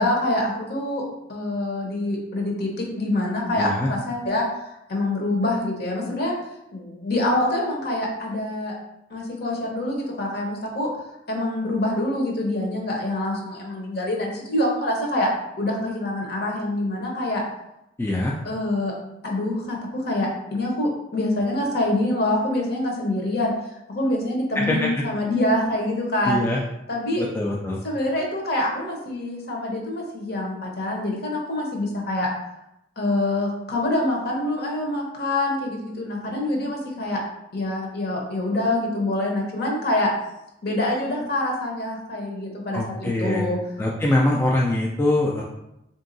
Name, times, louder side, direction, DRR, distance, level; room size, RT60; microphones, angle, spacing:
voice 1, 0.0-6.3 6.7-8.7 9.1-10.9 11.3-15.3 15.6-17.4 18.4-18.9 19.2-23.5 23.9-26.4 26.9-27.2 27.8-32.3 33.0-37.2 37.5-40.1 40.6-43.6, left 1 dB, 55° left, -1 dB, 1.0 m, -25 dB
voice 2, 3.6-3.9 18.0-18.3 24.6-25.0 26.3-26.6 27.2-27.8 42.7-43.5 43.8-45.4, left 1 dB, 10° left, -3 dB, 0.3 m, -23 dB
3.6 x 2.7 x 3.9 m, 0.85 s
head